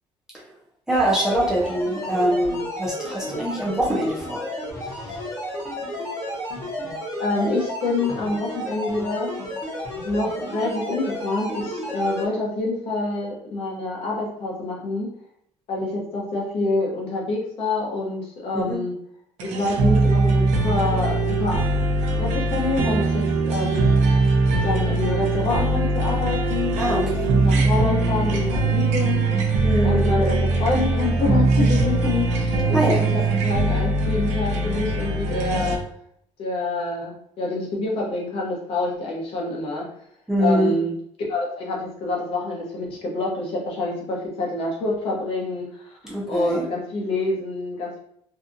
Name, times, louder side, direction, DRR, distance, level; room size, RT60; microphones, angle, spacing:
sound 1, 0.9-12.3, left 1 dB, 20° left, 0.8 m, -32 dB
voice 1, 0.9-4.5 4.9-5.2 18.5-18.8 26.8-27.6 29.6-30.1 32.7-33.0 40.3-40.7 46.0-46.6, right 1 dB, 5° right, -6 dB, 0.5 m, -24 dB
voice 2, 7.2-9.3 10.0-15.1 15.7-18.9 19.4-21.6 21.9-23.9 24.6-29.3 29.8-35.8 36.4-39.9 40.4-40.9 41.3-48.0, left 2 dB, 55° left, -2 dB, 0.7 m, -27 dB
sound 2, 19.4-35.8, right 2 dB, 75° right, 0.5 m, -21 dB
2.7 x 2.3 x 2.5 m, 0.68 s
cardioid pair, 180°, 12 cm